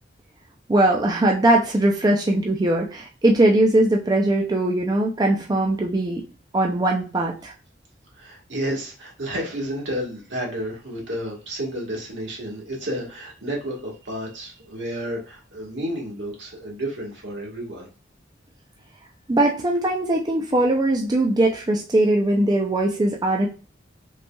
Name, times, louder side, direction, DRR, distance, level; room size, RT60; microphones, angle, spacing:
voice 1, 0.7-6.2 6.5-7.5 19.3-23.5, right 1 dB, 20° right, 0 dB, 0.4 m, -20 dB
voice 2, 8.1-17.9, equal, 80° right, -2 dB, 1.5 m, -31 dB
5.1 x 3.2 x 2.3 m, 0.35 s
head